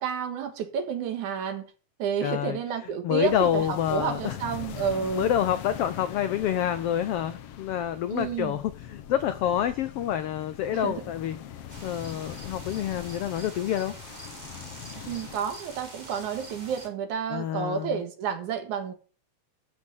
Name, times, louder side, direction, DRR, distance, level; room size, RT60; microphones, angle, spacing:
voice 1, 0.0-1.7 2.0-5.3 8.1-8.6 10.7-11.1 15.1-18.9, right 7 dB, 75° right, 2.9 m, -30 dB
voice 2, 2.2-2.6 3.0-4.4 5.1-11.4 11.8-13.9 17.3-18.0, left 10 dB, 90° left, 1.3 m, -27 dB
sound 1, 3.2-15.4, left 10 dB, 65° left, 1.7 m, -42 dB
sound 2, 11.7-16.9, right 2 dB, 15° right, 2.6 m, -45 dB
13.0 x 6.3 x 6.3 m
omnidirectional pair, 3.5 m